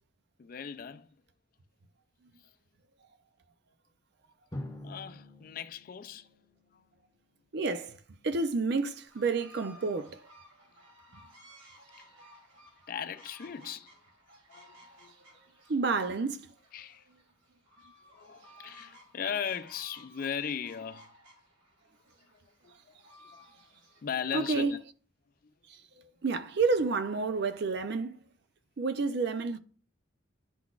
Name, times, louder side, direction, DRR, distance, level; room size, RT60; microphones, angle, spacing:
voice 1, 0.4-1.1 4.8-6.3 6.7-6.8 12.9-13.9 14.5-15.1 16.7-17.0 18.1-21.1 22.6-23.0 23.3-23.4 24.0-24.8, left 7 dB, 45° left, 0.4 m, -38 dB
Drum, 4.5-7.2, left 1 dB, 15° left, 0.8 m, -45 dB
voice 2, 7.5-8.0 8.2-10.2 15.7-16.4 24.3-24.7 25.7-25.8 26.2-28.2 28.8-29.6, right 4 dB, 60° right, 0.5 m, -29 dB
sound 1, 9.1-24.7, equal, 90° right, 2.7 m, -57 dB
10.5 x 3.9 x 2.3 m
head